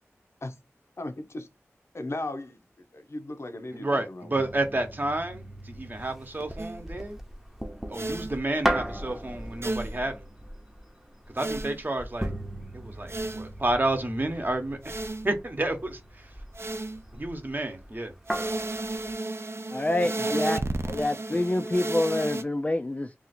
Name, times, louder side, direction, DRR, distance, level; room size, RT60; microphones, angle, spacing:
voice 1, 1.0-1.5 1.9-2.6 2.9-4.3 20.0-20.4, left 2 dB, 60° left, 0.6 m, -36 dB
voice 2, 3.7-7.2 7.9-10.3 11.3-12.3 12.7-14.8 15.2-16.3 17.1-18.1, right 2 dB, 40° right, 0.9 m, -30 dB
sound 1, 4.4-19.1, right 1 dB, 5° right, 0.7 m, -37 dB
sound 2, 6.6-6.8 7.9-8.3 9.6-10.0 11.4-11.8 13.1-13.5 14.8-15.3 16.5-17.0 18.3-22.4, right 2 dB, 55° right, 0.5 m, -32 dB
voice 3, 19.7-20.6 20.9-23.1, left 1 dB, 25° left, 0.3 m, -27 dB
2.8 x 2.4 x 4.1 m
wide cardioid pair, 55°, 5 cm